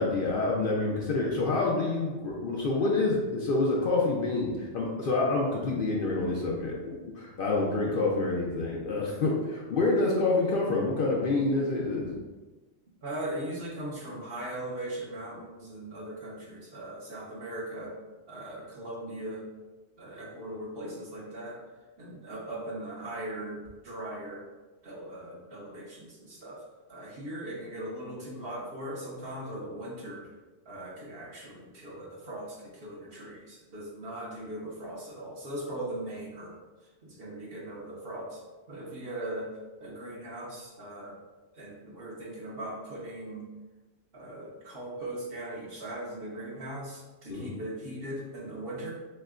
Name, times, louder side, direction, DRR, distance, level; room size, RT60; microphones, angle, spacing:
voice 1, 0.0-12.2 47.3-47.5, left 3 dB, 55° left, -3 dB, 0.7 m, -27 dB
voice 2, 13.0-18.0 18.3-19.5 20.0-21.6 22.0-24.4 24.8-26.6 26.9-30.3 30.6-36.6 37.0-38.4 38.7-41.2 41.5-43.5 44.1-48.9, right 1 dB, 55° right, -4 dB, 1.0 m, -39 dB
6.3 x 2.1 x 2.4 m, 1.2 s
omnidirectional pair, 1.2 m